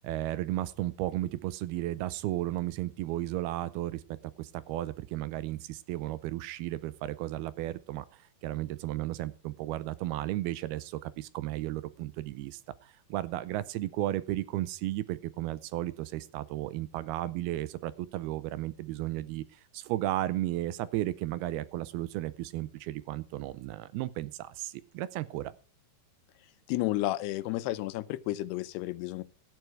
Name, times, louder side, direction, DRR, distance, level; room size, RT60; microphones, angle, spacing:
voice 1, 0.0-25.5, right 15 dB, 80° right, 2.5 m, -34 dB
voice 2, 26.7-29.2, left 16 dB, 85° left, 2.8 m, -32 dB
13.5 x 9.5 x 4.6 m
omnidirectional pair, 4.7 m